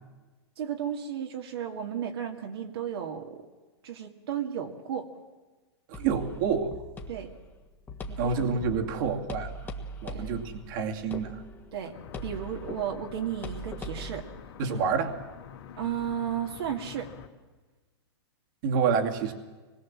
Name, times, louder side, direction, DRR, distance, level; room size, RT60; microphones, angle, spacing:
voice 1, 0.6-3.4 3.8-5.1 7.1-7.3 8.1-8.4 8.8-9.1 10.1-10.3 11.7-11.9 12.2-14.3 14.7-14.8 15.8-17.1, right 9 dB, 65° right, 2 dB, 2.3 m, -34 dB
sound 1, 5.9-14.2, left 1 dB, 15° left, 1.7 m, -41 dB
voice 2, 5.9-6.7 8.2-9.5 10.0-11.4 14.6-15.1 18.6-19.3, right 6 dB, 50° right, 3 dB, 2.5 m, -28 dB
sound 2, 11.9-17.3, left 9 dB, 65° left, 2.7 m, -47 dB
25.0 x 21.0 x 7.5 m, 1.2 s
hypercardioid pair, 145°, 14 cm